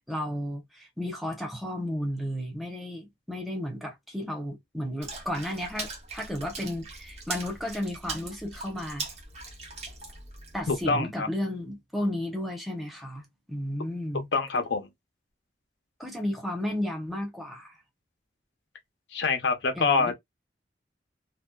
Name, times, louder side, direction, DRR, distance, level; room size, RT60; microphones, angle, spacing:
voice 1, 0.1-9.1 10.5-13.2 13.5-14.3 16.0-17.8 19.7-20.1, left 1 dB, ahead, 0.7 m, -33 dB
Water / Splash splatter, 5.0-10.8, right 3 dB, 35° right, 0.8 m, -40 dB
voice 2, 10.7-11.3 14.3-14.9 19.1-20.1, left 4 dB, 85° left, 0.6 m, -25 dB
2.6 x 2.2 x 2.2 m
head